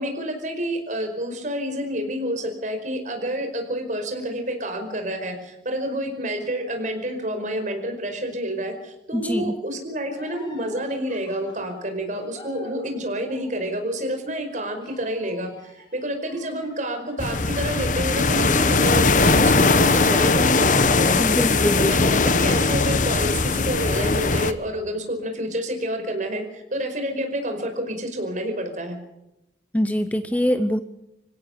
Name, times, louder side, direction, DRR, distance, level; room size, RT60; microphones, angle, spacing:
voice 1, 0.0-21.2 21.8-29.0, equal, 45° right, 5 dB, 5.2 m, -29 dB
voice 2, 9.1-9.5 21.2-22.2 29.7-30.8, equal, 10° left, 11 dB, 0.7 m, -23 dB
sound 1, 10.1-19.2 19.5-20.6, left 1 dB, 25° left, 6.4 m, -50 dB
sound 2, 17.2-24.5, left 3 dB, 45° left, 1.1 m, -19 dB
26.0 x 16.5 x 6.7 m, 0.87 s
head